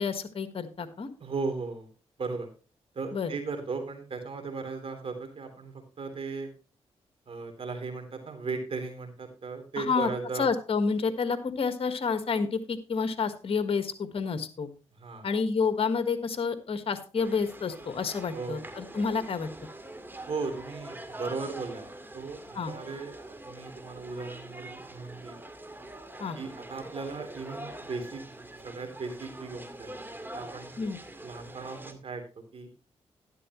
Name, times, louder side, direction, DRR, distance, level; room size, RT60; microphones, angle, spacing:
voice 1, 0.0-1.1 3.1-3.3 9.8-10.1 10.4-14.7 15.2-19.5 22.5-22.7 26.2-26.4 30.8-31.0, left 5 dB, 55° left, 9 dB, 1.6 m, -29 dB
voice 2, 1.2-1.9 2.2-2.5 2.9-6.5 7.3-10.5 15.0-15.3 18.3-18.7 20.3-23.1 23.4-25.4 26.3-28.2 28.6-30.0 30.3-30.7 31.2-32.2 32.5-32.7, right 4 dB, 55° right, 6 dB, 3.4 m, -36 dB
sound 1, 17.2-31.9, right 1 dB, 20° right, 2.1 m, -44 dB
12.0 x 11.0 x 3.1 m, 0.35 s
cardioid pair, 70°, 11 cm